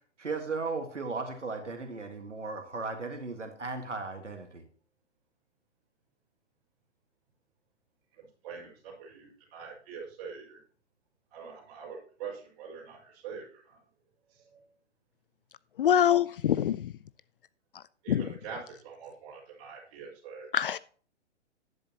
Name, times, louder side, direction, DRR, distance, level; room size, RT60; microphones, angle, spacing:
voice 1, 0.2-4.6, right 4 dB, 80° right, 5 dB, 1.8 m, -36 dB
voice 2, 8.1-10.6 11.3-13.8 14.3-14.6 18.0-20.5, right 6 dB, 35° right, -3 dB, 5.7 m, -44 dB
voice 3, 15.8-16.9 17.7-18.3 20.5-20.8, left 10 dB, 50° left, 18 dB, 0.4 m, -25 dB
12.0 x 10.5 x 2.9 m, 0.43 s
figure-of-eight pair, 120°, 35 cm